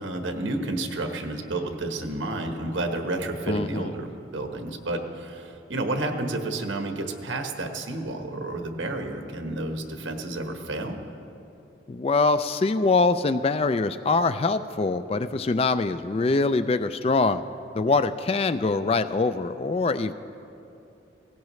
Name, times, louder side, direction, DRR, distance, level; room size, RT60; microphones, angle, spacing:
voice 1, 0.0-11.0, right 2 dB, 85° right, 4 dB, 1.3 m, -31 dB
voice 2, 3.5-3.9 11.9-17.4 17.7-20.1, left 3 dB, 30° left, 12 dB, 0.3 m, -23 dB
17.5 x 16.5 x 3.2 m, 2.8 s
head